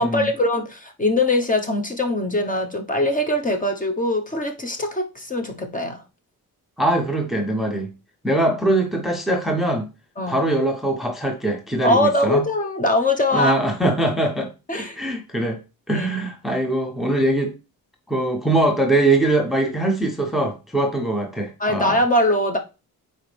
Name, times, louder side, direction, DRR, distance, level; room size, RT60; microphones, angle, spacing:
voice 1, 0.0-6.0 10.2-10.4 11.8-13.5 14.7-15.0 15.9-16.2 21.6-22.6, left 1 dB, 25° left, 1.0 m, -22 dB
voice 2, 6.8-7.9 8.2-9.9 10.3-12.4 13.3-15.6 15.9-17.5 18.1-22.0, right 1 dB, ahead, 0.7 m, -22 dB
9.1 x 4.3 x 3.3 m
wide cardioid pair, 170°, 35 cm